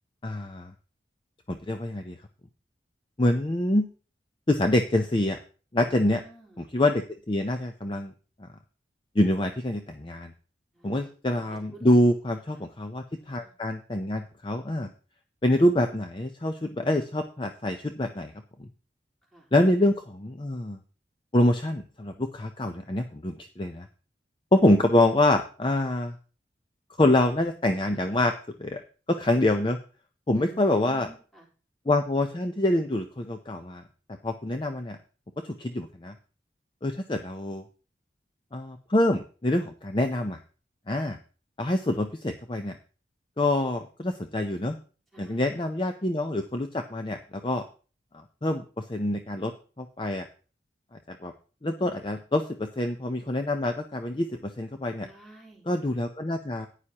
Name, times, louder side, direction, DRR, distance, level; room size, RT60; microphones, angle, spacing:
voice 1, 0.2-0.7 1.5-2.2 3.2-3.9 4.5-5.4 5.7-6.2 6.7-8.1 8.4-8.5 9.2-10.3 10.8-14.9 15.4-18.3 18.6-18.7 19.5-20.8 21.3-23.9 24.5-26.1 27.0-28.3 28.6-28.8 29.1-29.8 30.3-31.1 31.9-33.8 34.2-35.0 35.4-36.1 36.8-37.6 38.5-40.4 40.9-41.2 41.6-42.8 43.4-44.8 45.2-47.6 48.4-49.5 49.8-50.3 51.1-51.3 51.6-55.1 55.7-56.7, left 1 dB, 25° left, 6 dB, 0.6 m, -26 dB
voice 2, 5.8-6.7 10.7-11.1 11.4-12.0 12.3-12.4 13.1-13.5 19.3-19.5 30.3-31.5 45.1-45.5 55.0-56.0, right 2 dB, ahead, -6 dB, 3.8 m, -50 dB
14.5 x 9.9 x 2.9 m, 0.37 s
head